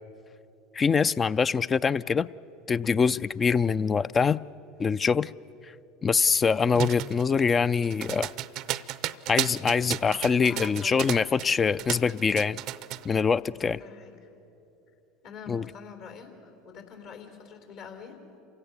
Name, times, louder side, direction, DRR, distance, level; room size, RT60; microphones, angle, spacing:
voice 1, 0.7-2.3 2.7-4.4 4.8-5.3 6.0-8.3 9.3-12.6 13.0-13.8 15.5-15.6, left 5 dB, 30° left, 16 dB, 0.4 m, -24 dB
voice 2, 3.4-3.8 10.3-11.6 13.5-14.3 15.2-18.2, left 6 dB, 65° left, 4 dB, 3.4 m, -45 dB
sound 1, 6.7-11.5 11.8-13.1, right 14 dB, 55° right, 0.5 m, -33 dB
28.0 x 16.5 x 7.1 m, 3.0 s
hypercardioid pair, 75°, 0 cm